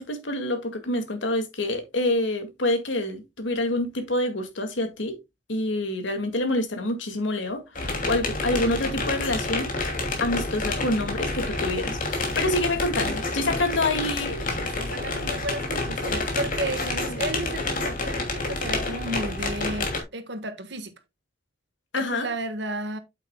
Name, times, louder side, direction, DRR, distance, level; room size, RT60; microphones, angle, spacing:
voice 1, 0.0-5.1 5.5-9.7 10.2-14.4 21.9-22.3, left 2 dB, 80° left, 2.0 m, -27 dB
sound 1, 7.8-20.0, left 2 dB, 45° left, 2.7 m, -29 dB
voice 2, 14.5-20.9 22.0-23.0, right 1 dB, 65° right, 1.4 m, -33 dB
8.4 x 8.3 x 2.2 m
head